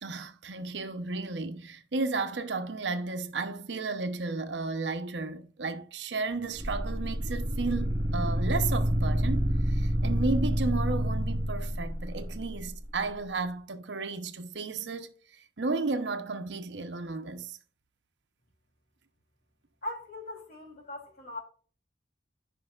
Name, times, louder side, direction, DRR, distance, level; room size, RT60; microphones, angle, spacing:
voice 1, 0.0-15.1 15.6-17.6, right 3 dB, 85° right, 0.8 m, -33 dB
sound 1, 6.6-12.7, equal, 25° right, 4.0 m, -28 dB
voice 2, 19.8-21.4, left 1 dB, 55° left, 3.3 m, -40 dB
15.0 x 5.4 x 2.4 m
head